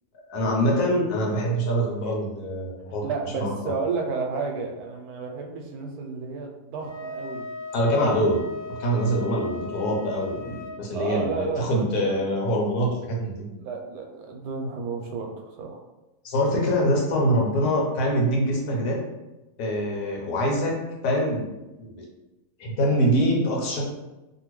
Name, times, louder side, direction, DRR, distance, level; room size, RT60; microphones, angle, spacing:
voice 1, 0.3-3.1 3.4-3.7 7.7-8.4 8.8-13.5 16.2-19.0 19.6-20.7 21.0-21.5 21.8-22.0 22.6-23.9, equal, 90° left, -1 dB, 1.3 m, -24 dB
voice 2, 3.0-7.4 7.8-8.3 10.9-12.3 13.6-15.8 17.6-17.7, right 4 dB, 80° right, 2 dB, 1.1 m, -32 dB
Wind instrument woodwind instrument, 6.8-10.8, left 2 dB, 50° left, 1.0 m, -38 dB
2.8 x 2.6 x 3.0 m, 1.0 s
omnidirectional pair, 1.6 m